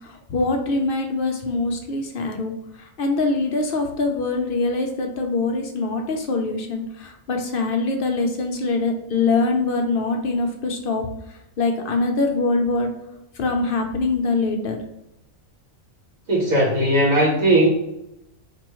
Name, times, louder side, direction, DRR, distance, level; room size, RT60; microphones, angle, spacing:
voice 1, 0.0-2.5 2.8-11.1 11.6-12.9 13.4-14.8, left 3 dB, 60° left, 3 dB, 0.6 m, -23 dB
voice 2, 16.3-17.7, right 1 dB, 75° right, -5 dB, 1.4 m, -18 dB
4.4 x 3.0 x 2.9 m, 0.86 s
omnidirectional pair, 1.4 m